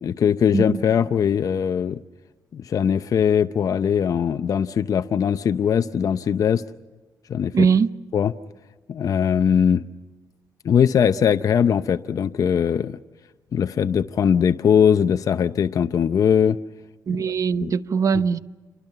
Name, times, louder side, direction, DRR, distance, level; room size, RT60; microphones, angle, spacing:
voice 1, 0.0-2.0 2.5-6.6 7.3-7.7 8.1-8.3 8.9-9.8 10.6-13.0 13.5-16.6 17.3-17.4 17.6-17.7, left 8 dB, 60° left, 0.7 m, -20 dB
voice 2, 7.5-7.9 17.1-18.4, right 6 dB, 55° right, 0.9 m, -21 dB
28.5 x 23.5 x 5.8 m
cardioid pair, 90°, 7 cm